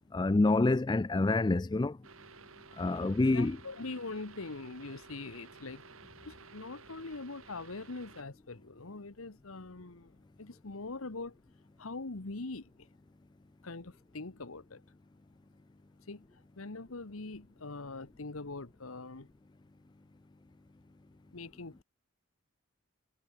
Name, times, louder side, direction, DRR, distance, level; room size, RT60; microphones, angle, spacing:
voice 1, 0.1-2.0 2.8-3.6, left 2 dB, 20° left, 0.4 m, -27 dB
sound 1, 2.0-8.2, right 4 dB, 85° right, 3.3 m, -54 dB
voice 2, 3.3-5.8 6.2-11.4 11.8-12.9 13.6-14.8 16.1-19.3 21.3-21.8, left 3 dB, 90° left, 1.4 m, -43 dB
head